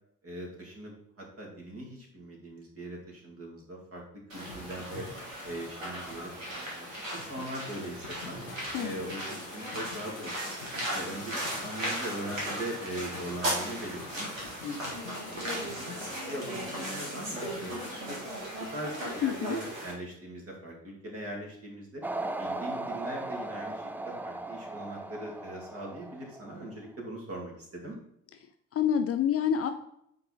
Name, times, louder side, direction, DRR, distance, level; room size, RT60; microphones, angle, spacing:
voice 1, 0.2-5.1 5.4-8.4 8.8-10.4 10.9-14.3 14.6-14.8 15.3-18.2 18.6-22.0 22.4-28.0, right 1 dB, 35° right, -1 dB, 2.5 m, -41 dB
sound 1, 4.3-19.9, right 1 dB, 80° right, 1.9 m, -37 dB
sound 2, 4.5-6.3 6.7-17.9, left 6 dB, 85° left, 0.6 m, -49 dB
voice 2, 19.2-19.6 28.7-29.7, left 8 dB, 35° left, 7 dB, 0.6 m, -27 dB
sound 3, 22.0-26.7, right 2 dB, 5° right, 0.4 m, -37 dB
8.7 x 3.7 x 4.0 m, 0.74 s
figure-of-eight pair, 45°, 39 cm